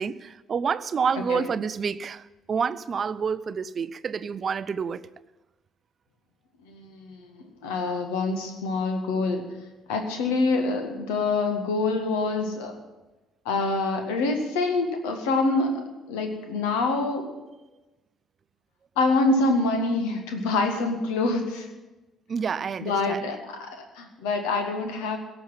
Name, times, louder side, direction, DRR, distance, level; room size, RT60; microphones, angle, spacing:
voice 1, 0.0-5.0 22.3-23.3, right 6 dB, 40° right, 15 dB, 0.5 m, -28 dB
voice 2, 6.7-9.4 9.9-12.8 13.5-17.3 19.0-21.7 22.8-25.2, left 3 dB, 65° left, 5 dB, 1.8 m, -26 dB
17.0 x 7.1 x 9.9 m, 1.1 s
figure-of-eight pair, 50°, 0 cm